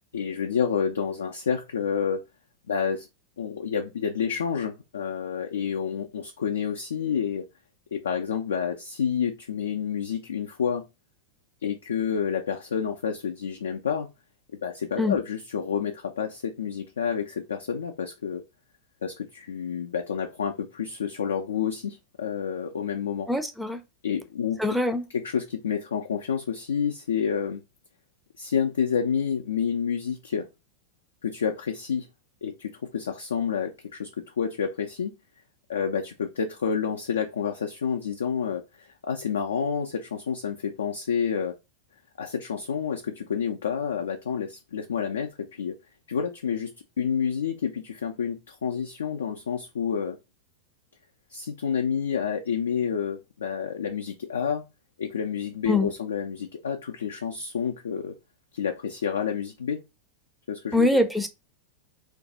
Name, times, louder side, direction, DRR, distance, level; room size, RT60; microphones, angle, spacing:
voice 1, 0.1-2.2 2.7-3.1 3.4-7.5 7.9-10.8 11.6-14.1 14.6-18.4 19.0-23.3 24.0-24.8 25.1-27.6 28.4-30.5 31.2-32.1 32.4-34.1 34.4-35.1 35.7-41.5 42.2-45.8 46.1-46.7 47.0-50.2 51.3-54.6 55.0-58.1 58.5-59.8 60.5-61.0, left 7 dB, 65° left, 0.4 m, -29 dB
voice 2, 23.3-23.8 24.6-25.1 55.7-55.9 60.7-61.3, left 2 dB, ahead, 0.5 m, -23 dB
2.6 x 2.3 x 3.9 m
figure-of-eight pair, 90°, 0 cm